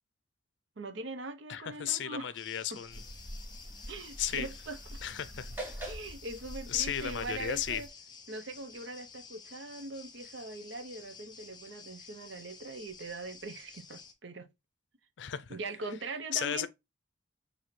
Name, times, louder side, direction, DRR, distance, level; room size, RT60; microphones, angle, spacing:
voice 1, 0.8-2.3 2.7-2.8 3.9-4.8 5.9-7.9 8.3-14.5 15.5-16.7, right 2 dB, 80° right, 0.7 m, -41 dB
voice 2, 1.5-3.0 4.2-4.5 5.0-5.5 6.7-7.8 15.2-15.6 16.3-16.7, left 9 dB, 75° left, 0.4 m, -34 dB
sound 1, 2.3-14.1, left 5 dB, 20° left, 0.5 m, -52 dB
sound 2, 2.9-7.9, equal, 10° right, 1.0 m, -44 dB
5.8 x 2.7 x 3.1 m
head